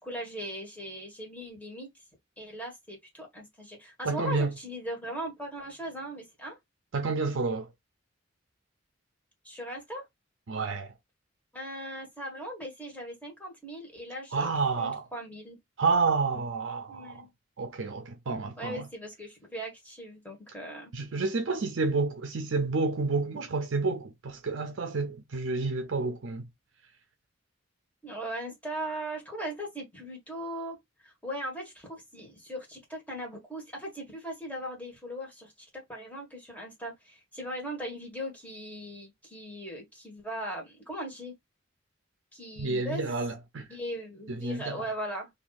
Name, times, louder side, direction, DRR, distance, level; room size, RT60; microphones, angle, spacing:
voice 1, 0.0-1.9 2.4-6.6 9.4-10.0 11.5-14.5 14.8-15.6 16.9-17.3 18.6-20.9 28.0-30.8 31.0-41.3 42.3-43.1 43.7-45.3, right 1 dB, 10° left, 1.6 m, -39 dB
voice 2, 4.0-4.6 6.9-7.7 10.5-10.9 14.3-15.0 15.8-17.3 17.6-18.8 20.9-26.5 42.6-43.7 44.4-44.9, right 4 dB, 70° right, 0.6 m, -29 dB
2.7 x 2.6 x 3.9 m
head